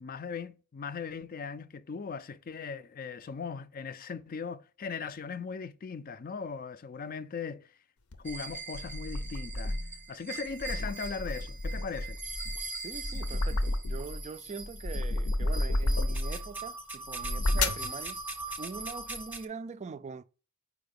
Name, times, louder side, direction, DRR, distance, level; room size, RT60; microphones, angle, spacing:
voice 1, 0.0-7.7 8.2-9.8 10.1-12.2, left 5 dB, 40° left, 0.4 m, -39 dB
sound 1, 8.1-10.0 10.5-14.2 14.6-16.5 17.1-17.9, left 1 dB, 75° left, 0.7 m, -31 dB
sound 2, 8.2-19.4, right 3 dB, 10° right, 0.7 m, -41 dB
voice 2, 12.8-18.2 18.6-20.2, right 4 dB, 30° right, 0.3 m, -42 dB
4.8 x 4.7 x 5.1 m
head